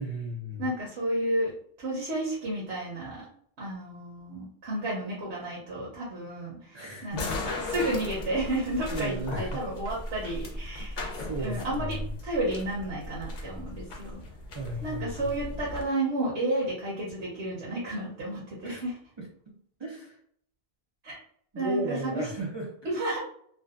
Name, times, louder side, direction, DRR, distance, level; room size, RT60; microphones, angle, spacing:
voice 1, 0.0-0.7 6.7-7.4 8.9-9.6 11.1-12.1 14.5-15.3 18.6-18.8 19.2-20.2 21.5-22.7, right 2 dB, 50° right, -4 dB, 0.3 m, -35 dB
voice 2, 0.6-1.5 1.8-3.3 3.6-7.2 7.6-11.0 11.4-12.0 12.2-14.2 14.8-19.0 21.0-21.2 21.5-22.3 22.8-23.2, right 1 dB, 80° right, -5 dB, 1.0 m, -31 dB
sound 1, 7.1-15.8, left 2 dB, 55° left, 0.6 m, -37 dB
2.6 x 2.2 x 2.4 m, 0.65 s
omnidirectional pair, 1.1 m